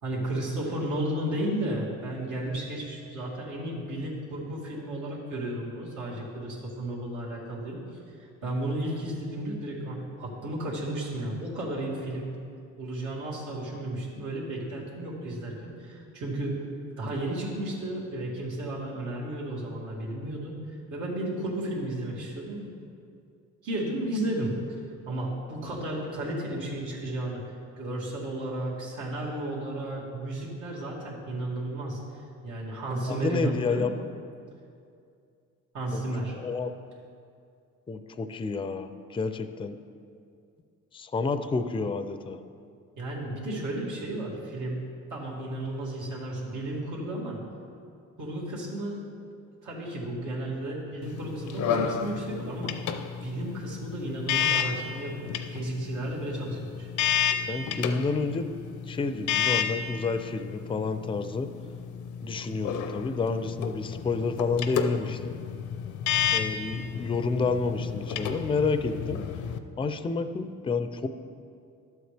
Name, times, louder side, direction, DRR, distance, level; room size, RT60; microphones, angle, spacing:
voice 1, 0.0-7.8 8.4-12.3 12.8-16.6 17.0-22.7 23.6-24.5 25.1-27.4 27.8-32.0 32.4-33.8 35.7-36.4 43.0-44.8 45.1-47.4 48.2-49.0 49.6-52.7 53.2-56.9, right 1 dB, 80° right, -5 dB, 2.4 m, -33 dB
voice 2, 33.1-33.9 35.9-36.0 36.3-36.7 37.9-39.8 40.9-42.4 57.5-58.5 58.9-61.5 62.2-65.4 66.3-69.2 69.8-71.1, left 4 dB, 15° left, 10 dB, 0.4 m, -29 dB
sound 1, 51.0-69.6, left 8 dB, 75° left, 0.6 m, -31 dB
12.0 x 7.9 x 3.4 m, 2.4 s
cardioid pair, 90°, 30 cm